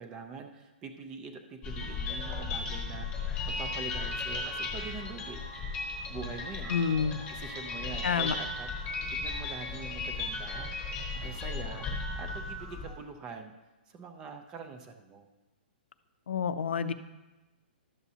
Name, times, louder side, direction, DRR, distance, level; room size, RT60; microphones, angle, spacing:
voice 1, 0.0-5.4 6.1-6.8 7.3-8.7 9.1-10.7 11.1-13.5 13.9-15.3, right 5 dB, 10° right, 6 dB, 0.4 m, -44 dB
sound 1, 1.6-12.9, left 3 dB, 15° left, 1.1 m, -36 dB
voice 2, 6.7-7.2 8.0-8.3 16.3-16.9, left 6 dB, 85° left, 11 dB, 0.6 m, -28 dB
12.0 x 7.1 x 2.8 m, 1.1 s
hypercardioid pair, 180°, 6 cm